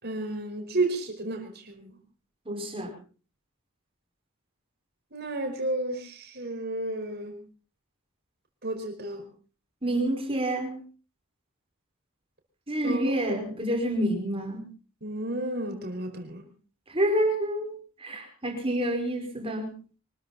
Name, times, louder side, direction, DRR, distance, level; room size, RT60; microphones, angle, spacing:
voice 1, 0.0-2.0 5.1-7.4 8.6-9.2 12.8-13.2 13.5-13.6 15.0-16.5, right 2 dB, 45° right, 4.7 m, -32 dB
voice 2, 2.5-2.9 9.8-10.8 12.7-14.7 16.9-19.7, right 1 dB, 25° right, 5.1 m, -28 dB
25.0 x 13.5 x 4.2 m
head